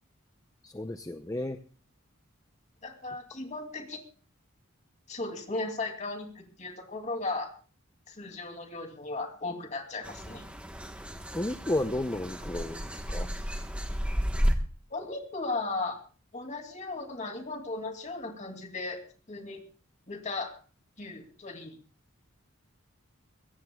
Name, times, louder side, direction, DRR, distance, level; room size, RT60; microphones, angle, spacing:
voice 1, 0.6-1.6 11.3-13.3, left 1 dB, 15° left, 8 dB, 0.6 m, -32 dB
voice 2, 2.8-4.0 5.1-7.5 8.1-10.4 14.9-16.0 16.3-19.0 19.3-19.6 20.1-20.5 21.0-21.8, left 3 dB, 35° left, 4 dB, 2.6 m, -36 dB
sound 1, 10.0-14.6, equal, 5° right, 1.2 m, -32 dB
22.5 x 17.0 x 2.3 m, 0.38 s
head